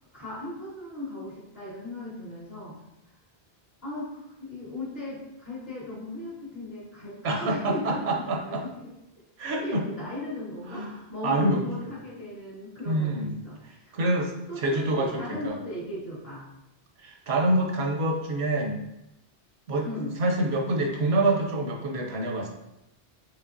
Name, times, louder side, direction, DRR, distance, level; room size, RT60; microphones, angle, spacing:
voice 1, 0.1-2.7 3.8-8.9 9.4-13.6 13.9-14.0 14.5-16.5 19.8-20.2, left 1 dB, 70° left, -10 dB, 2.0 m, -37 dB
voice 2, 7.2-8.6 9.4-9.8 10.7-10.9 11.2-11.9 12.9-13.3 13.7-15.6 17.0-18.8 19.7-19.9 20.2-22.5, right 1 dB, 90° right, 1 dB, 1.0 m, -26 dB
5.4 x 3.0 x 2.5 m, 0.88 s
omnidirectional pair, 1.0 m